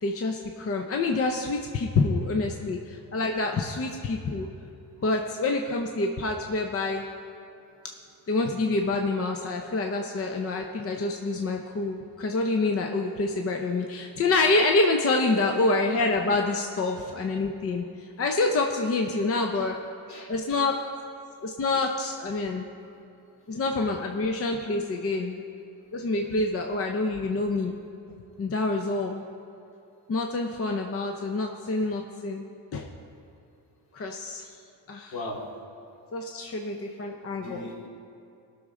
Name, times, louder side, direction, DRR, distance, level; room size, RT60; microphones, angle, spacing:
voice 1, 0.0-4.5 5.0-7.1 8.3-19.8 20.3-20.7 21.4-22.7 23.5-25.4 25.9-27.8 28.4-29.2 30.1-32.4 32.7-32.9 33.9-34.5 34.9-35.1 36.1-37.7, left 3 dB, 35° left, 3 dB, 0.7 m, -27 dB
voice 2, 20.1-20.7 35.1-35.4 37.4-37.9, left 2 dB, 65° left, -4 dB, 2.4 m, -40 dB
18.5 x 6.4 x 3.7 m, 2.7 s
cardioid pair, 120°, 41 cm